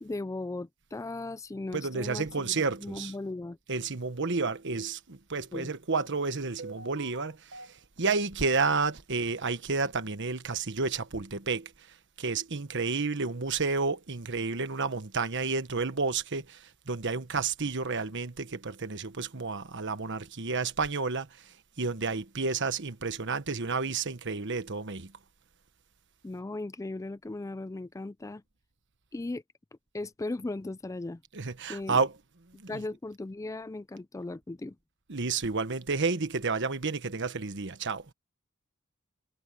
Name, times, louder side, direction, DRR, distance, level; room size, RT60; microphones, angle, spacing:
voice 1, 0.0-3.6 5.5-5.7 26.2-28.4 29.1-29.4 29.9-31.2 31.7-32.0 32.7-34.8, left 2 dB, 15° left, 0.4 m, -37 dB
voice 2, 1.7-3.1 3.7-11.7 12.2-25.1 31.3-32.2 32.5-32.9 35.1-38.0, right 4 dB, 60° right, 1.3 m, -31 dB
head